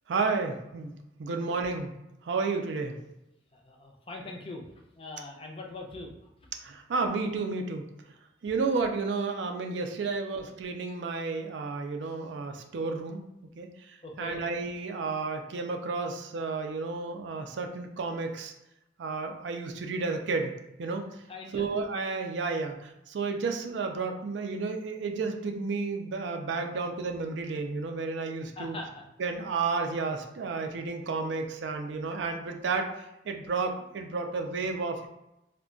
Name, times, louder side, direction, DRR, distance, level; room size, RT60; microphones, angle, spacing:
voice 1, 0.1-0.9 1.2-1.9 2.2-2.9 6.6-7.8 8.4-13.2 13.6-18.5 19.0-20.5 20.8-21.0 21.5-28.8 29.2-35.1, right 4 dB, 75° right, 4 dB, 0.4 m, -32 dB
voice 2, 3.5-4.6 5.0-6.1 14.0-14.4 21.3-21.6 28.6-29.0, left 2 dB, 30° left, 0 dB, 0.5 m, -41 dB
2.3 x 2.2 x 3.7 m, 0.89 s
head